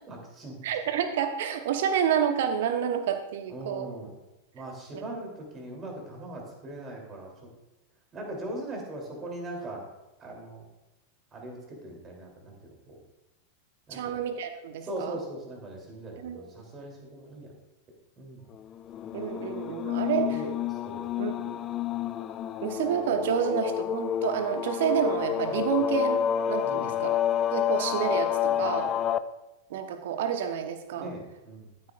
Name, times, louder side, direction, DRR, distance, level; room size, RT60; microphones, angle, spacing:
voice 1, 0.1-0.6 3.5-4.1 4.5-7.5 8.1-9.9 10.2-10.6 11.3-13.0 13.9-14.2 14.8-17.5 18.2-18.4 20.1-21.1 25.7-25.8 26.6-27.0 28.6-28.7 30.9-31.7, right 1 dB, 25° right, 0 dB, 3.1 m, -40 dB
voice 2, 0.6-3.9 4.9-5.0 13.9-15.2 16.2-16.5 19.1-20.4 21.2-21.6 22.6-27.1 27.5-28.9 29.7-31.1, right 9 dB, 55° right, 8 dB, 1.0 m, -29 dB
sound 1, 18.9-29.2, left 10 dB, 30° left, 0.4 m, -29 dB
14.0 x 8.7 x 2.5 m, 1.0 s
figure-of-eight pair, 90°, 0 cm